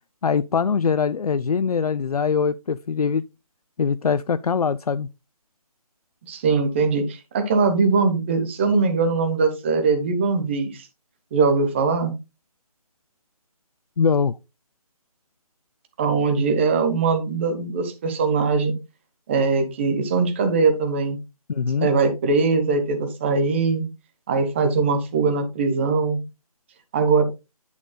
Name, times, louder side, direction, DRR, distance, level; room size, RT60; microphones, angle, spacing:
voice 1, 0.2-3.2 3.8-5.1 14.0-14.4 21.5-21.9, left 6 dB, 75° left, 0.4 m, -22 dB
voice 2, 6.3-10.9 11.3-12.1 16.0-18.7 19.3-21.2 21.8-23.8 24.3-26.2 26.9-27.2, right 4 dB, 20° right, 1.0 m, -21 dB
9.5 x 8.1 x 2.2 m
figure-of-eight pair, 155°, 19 cm